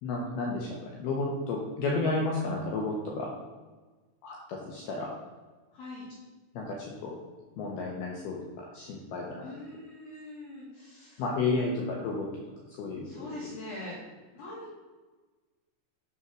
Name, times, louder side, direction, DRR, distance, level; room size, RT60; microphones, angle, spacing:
voice 1, 0.0-3.3 4.2-5.1 6.5-7.2 7.6-9.4 11.2-12.2 12.8-13.3, left 3 dB, 75° left, -2 dB, 2.3 m, -32 dB
voice 2, 5.7-6.1 9.4-11.2 13.0-14.0 14.3-14.7, left 2 dB, 55° left, -7 dB, 3.3 m, -42 dB
7.3 x 5.6 x 6.2 m, 1.3 s
omnidirectional pair, 5.8 m